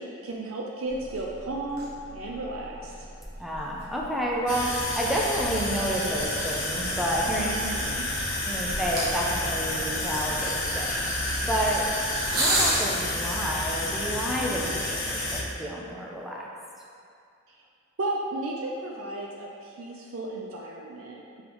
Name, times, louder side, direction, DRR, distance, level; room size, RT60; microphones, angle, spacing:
voice 1, 0.0-2.9 7.4-8.0 14.4-14.8 18.0-21.4, right 2 dB, 70° right, -2 dB, 0.5 m, -34 dB
sound 1, 0.8-12.8, right 1 dB, 45° right, 1.5 m, -35 dB
voice 2, 3.4-7.6 8.5-11.9 12.3-16.5, equal, ahead, -4 dB, 0.6 m, -30 dB
sound 2, 4.5-15.4, left 1 dB, 60° left, 1.3 m, -30 dB
8.8 x 4.0 x 3.0 m, 2.4 s
head